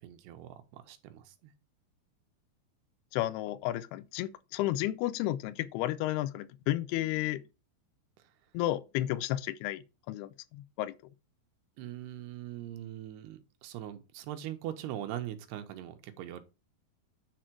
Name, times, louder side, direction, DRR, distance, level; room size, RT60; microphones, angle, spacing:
voice 1, 0.0-1.5 8.2-8.3 11.8-16.4, right 12 dB, 90° right, 3.1 m, -41 dB
voice 2, 3.1-7.4 8.5-10.9, left 14 dB, 85° left, 2.6 m, -32 dB
10.0 x 4.4 x 4.6 m
omnidirectional pair, 4.5 m